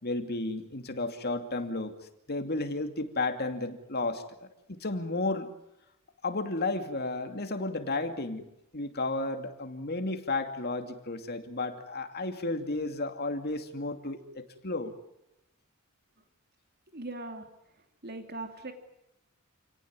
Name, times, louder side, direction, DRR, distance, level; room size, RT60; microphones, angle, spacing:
voice 1, 0.0-2.0 2.3-5.5 6.2-8.5 8.7-14.9, left 2 dB, 50° left, 7 dB, 2.6 m, -33 dB
voice 2, 16.9-17.5 18.0-18.7, right 2 dB, 50° right, 5 dB, 2.8 m, -39 dB
28.5 x 18.0 x 9.6 m, 0.87 s
head